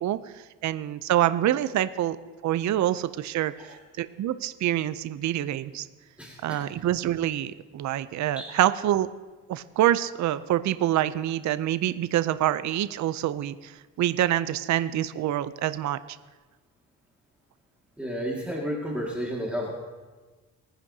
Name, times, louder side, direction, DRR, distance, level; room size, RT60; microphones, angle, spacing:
voice 1, 0.0-2.2 2.4-5.9 6.4-9.1 9.5-16.0, right 12 dB, 55° right, 14 dB, 0.5 m, -26 dB
voice 2, 6.2-6.6 8.4-8.5 18.0-19.8, equal, 5° right, -3 dB, 2.0 m, -31 dB
20.0 x 10.0 x 2.8 m, 1.3 s
cardioid pair, 90°, 35 cm